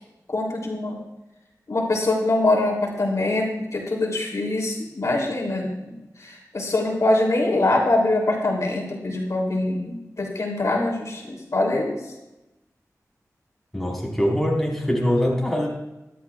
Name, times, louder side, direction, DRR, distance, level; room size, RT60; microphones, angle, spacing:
voice 1, 0.3-1.0 1.7-5.9 6.2-12.0, left 2 dB, 60° left, 0 dB, 3.1 m, -23 dB
voice 2, 13.7-15.7, equal, 5° left, -2 dB, 4.4 m, -23 dB
24.0 x 11.5 x 2.4 m, 1.0 s
wide cardioid pair, 95°, 6 cm